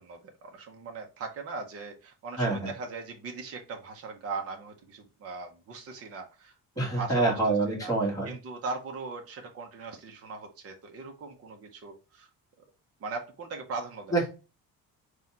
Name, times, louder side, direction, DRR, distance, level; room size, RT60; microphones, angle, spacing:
voice 1, 0.0-7.3 7.8-7.9 8.3-12.3 13.0-14.2, right 4 dB, 40° right, 3 dB, 0.8 m, -39 dB
voice 2, 2.4-2.7 6.8-8.3 14.1-14.3, right 2 dB, 10° left, -3 dB, 1.6 m, -26 dB
4.1 x 2.4 x 4.1 m, 0.31 s
cardioid pair, 165°, 38 cm